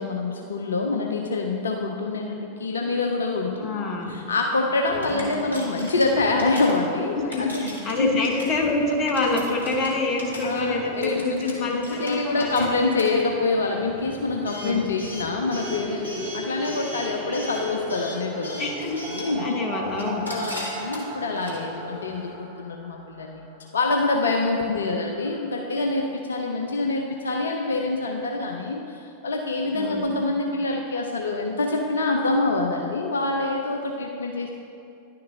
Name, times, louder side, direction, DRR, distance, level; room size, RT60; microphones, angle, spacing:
voice 1, 0.0-8.2 10.4-19.6 20.3-23.5 23.7-34.5, left 3 dB, 70° left, 2 dB, 0.5 m, -26 dB
voice 2, 3.6-4.2 5.1-5.4 7.1-12.7 14.6-14.9 18.6-19.0 19.4-20.3 24.7-25.1 29.7-30.1, left 3 dB, 35° left, 1 dB, 1.0 m, -27 dB
Coin (dropping) / Alarm, 4.8-22.3, equal, 90° right, 1.3 m, -39 dB
sound 1, 15.4-23.6 23.9-24.0 24.2-24.3 24.6-24.7 24.9-25.5, right 1 dB, 35° right, 1.9 m, -37 dB
10.5 x 6.6 x 2.7 m, 2.6 s
figure-of-eight pair, 90°, 0 cm